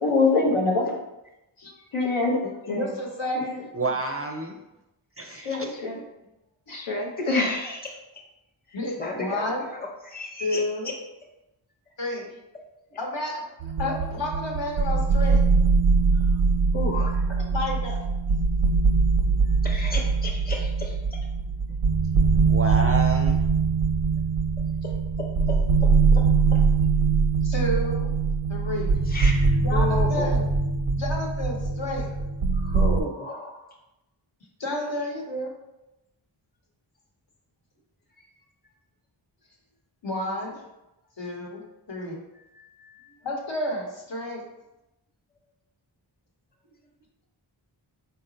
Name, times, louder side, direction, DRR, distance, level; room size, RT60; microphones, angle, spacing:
voice 1, 0.0-1.0 1.9-2.4 2.7-2.9 5.4-6.0 6.7-7.5, left 3 dB, 90° left, -1 dB, 0.9 m, -24 dB
voice 2, 2.7-3.7 8.7-9.6 10.4-10.9 12.0-12.3 13.0-13.4 13.8-15.4 17.5-18.0 27.4-28.1 28.5-28.9 29.6-30.4 30.9-32.1 34.6-35.5 40.0-40.6 41.2-41.6 41.9-42.2 43.2-44.4, left 1 dB, 65° left, -1 dB, 1.1 m, -31 dB
voice 3, 3.7-4.6 5.2-5.7 21.7-21.8 22.1-23.5, right 3 dB, 30° right, 3 dB, 0.4 m, -30 dB
voice 4, 7.2-8.0 8.7-10.9 16.1-16.2 16.7-17.2 19.6-21.2 25.5-25.6 26.1-26.2 26.5-26.6 29.1-30.3 32.5-33.7 42.5-43.2, left 2 dB, 20° left, 0 dB, 0.7 m, -34 dB
sound 1, 13.6-33.0, right 4 dB, 90° right, 0.6 m, -22 dB
4.1 x 2.1 x 3.9 m, 0.94 s
wide cardioid pair, 50°, 47 cm